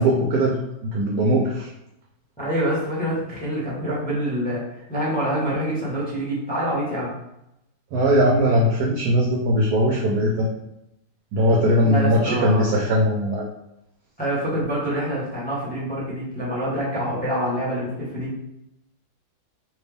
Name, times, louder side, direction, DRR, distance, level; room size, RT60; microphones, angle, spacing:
voice 1, 0.0-1.7 7.9-10.5 11.3-13.5, equal, 70° right, -2 dB, 0.9 m, -20 dB
voice 2, 2.4-4.6 4.9-7.1 11.8-12.7 14.2-18.3, equal, 5° left, -7 dB, 0.8 m, -26 dB
3.4 x 2.8 x 3.3 m, 0.86 s
omnidirectional pair, 2.2 m